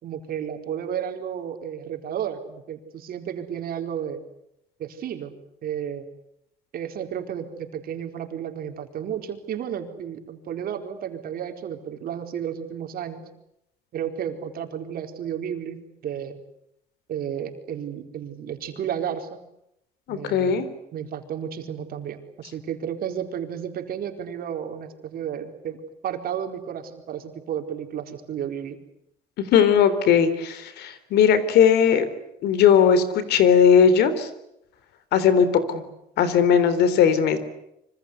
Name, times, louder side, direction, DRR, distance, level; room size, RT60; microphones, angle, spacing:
voice 1, 0.0-4.2 4.8-5.3 5.6-6.1 6.7-13.2 13.9-16.4 17.1-19.4 20.1-20.7 20.9-28.8, right 9 dB, 60° right, 5 dB, 4.4 m, -32 dB
voice 2, 20.1-20.7 29.4-32.1 32.4-34.3 35.1-35.8 36.2-37.4, left 7 dB, 75° left, 13 dB, 3.7 m, -18 dB
26.5 x 25.5 x 8.2 m, 0.80 s
cardioid pair, 110°, 17 cm